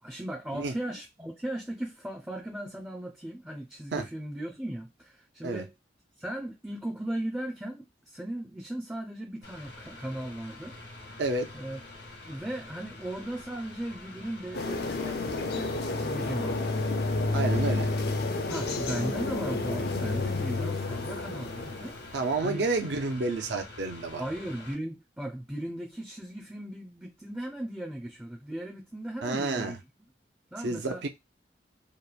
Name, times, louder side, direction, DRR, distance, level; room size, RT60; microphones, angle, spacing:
voice 1, 0.0-5.7 6.2-10.8 11.5-11.8 12.2-16.7 18.5-22.0 22.4-22.7 24.2-29.8 30.5-31.0, right 1 dB, 5° right, 0.4 m, -37 dB
Mechanical fan, 9.4-24.7, left 2 dB, 75° left, 1.1 m, -47 dB
sound 1, 14.5-22.1, left 3 dB, 60° left, 0.5 m, -30 dB
voice 2, 17.3-17.9 22.1-24.2 29.2-29.8 30.6-31.1, right 3 dB, 75° right, 0.6 m, -30 dB
2.9 x 2.1 x 2.3 m
head